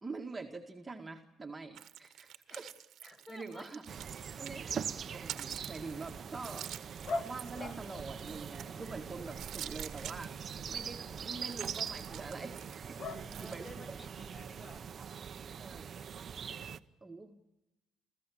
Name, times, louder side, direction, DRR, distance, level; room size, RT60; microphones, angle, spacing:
voice 1, 0.0-2.7 3.1-3.8 4.4-6.7 7.2-10.3 10.7-12.6 12.9-13.0 13.4-14.0 15.6-15.9 17.0-17.4, right 3 dB, 20° right, 2 dB, 2.0 m, -45 dB
sound 1, 1.7-4.7 5.0-8.9 9.2-10.9 11.2-13.7, right 11 dB, 65° right, 1.4 m, -47 dB
voice 2, 3.0-3.7 8.6-9.9 11.1-11.4 13.0-14.9, left 1 dB, 25° left, 5 dB, 6.4 m, -54 dB
sound 2, 3.9-16.8, right 7 dB, 45° right, 0.9 m, -43 dB
sound 3, 7.0-13.2, left 3 dB, 45° left, 1.7 m, -45 dB
30.0 x 15.0 x 8.6 m, 0.97 s
supercardioid pair, 80°, 0 cm